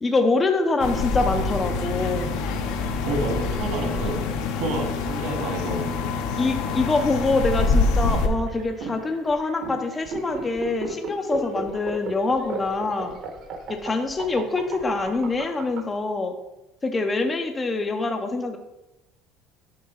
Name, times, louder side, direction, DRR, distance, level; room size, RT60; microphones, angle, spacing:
voice 1, 0.0-2.4 6.3-13.2 13.8-16.3 16.8-18.6, left 3 dB, 15° left, 5 dB, 0.4 m, -25 dB
sound 1, 0.8-8.3, left 4 dB, 75° left, 0.7 m, -26 dB
voice 2, 3.0-4.2 4.6-5.8, right 2 dB, 65° right, 1 dB, 1.8 m, -29 dB
sound 2, 3.4-15.8, right 4 dB, 45° right, 0.8 m, -35 dB
6.6 x 3.7 x 5.6 m, 0.99 s
cardioid pair, 165°, 0 cm